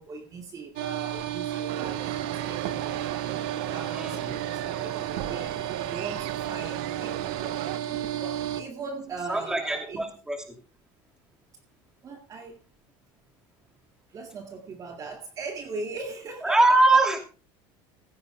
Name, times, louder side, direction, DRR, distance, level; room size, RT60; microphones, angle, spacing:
voice 1, 0.0-3.0 3.6-7.2 8.1-10.0 12.0-12.6 14.1-16.6 16.9-17.1, right 4 dB, 30° right, 2.0 m, -39 dB
sound 1, 0.8-8.6, right 11 dB, 85° right, 1.8 m, -33 dB
sound 2, 1.7-7.8, right 13 dB, 60° right, 1.0 m, -36 dB
voice 2, 3.9-4.4 9.3-10.4 16.4-17.2, right 2 dB, 5° right, 2.7 m, -22 dB
16.0 x 15.5 x 2.2 m
cardioid pair, 155°, 12 cm